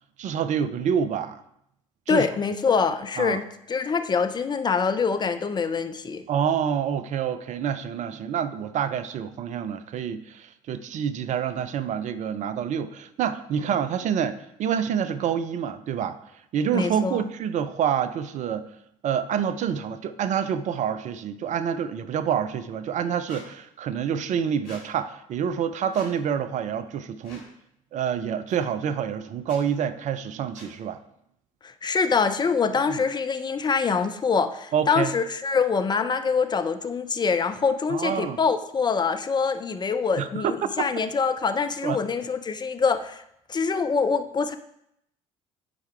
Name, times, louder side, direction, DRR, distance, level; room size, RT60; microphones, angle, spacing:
voice 1, 0.2-1.4 2.1-2.3 3.2-3.4 6.3-16.2 16.5-18.7 19.0-27.4 27.9-31.0 32.9-33.0 34.7-35.1 37.9-38.4 40.2-40.9 41.8-42.0, right 8 dB, 45° right, 12 dB, 0.5 m, -27 dB
voice 2, 2.1-6.2 16.7-17.3 31.6-43.2 43.5-44.6, left 5 dB, 25° left, 9 dB, 0.5 m, -25 dB
Squeak, 23.3-23.4 24.6-24.8 25.9-26.1 27.2-27.5 28.5-28.6 29.4-29.6 30.5-30.7, left 3 dB, 60° left, 2.1 m, -46 dB
9.9 x 4.6 x 3.3 m, 0.77 s
figure-of-eight pair, 55°, 17 cm